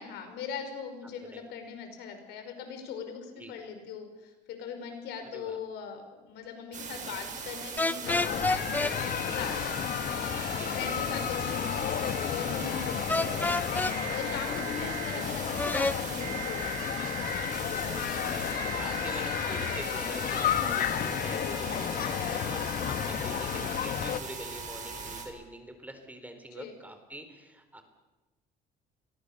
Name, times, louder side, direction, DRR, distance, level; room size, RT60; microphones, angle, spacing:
voice 1, 0.0-13.8 14.1-17.0 26.5-26.7, left 6 dB, 85° left, 6 dB, 5.5 m, -40 dB
sound 1, 6.7-25.3, right 5 dB, 45° right, 6.5 m, -39 dB
sound 2, 7.8-8.9 13.1-13.9 15.6-16.0, left 2 dB, 10° left, 0.8 m, -28 dB
sound 3, 8.1-24.2, left 9 dB, 60° left, 1.6 m, -32 dB
voice 2, 17.8-22.6 22.9-27.8, right 1 dB, 10° right, 7 dB, 4.3 m, -45 dB
29.5 x 23.0 x 7.1 m, 1.1 s
cardioid pair, 110°, 17 cm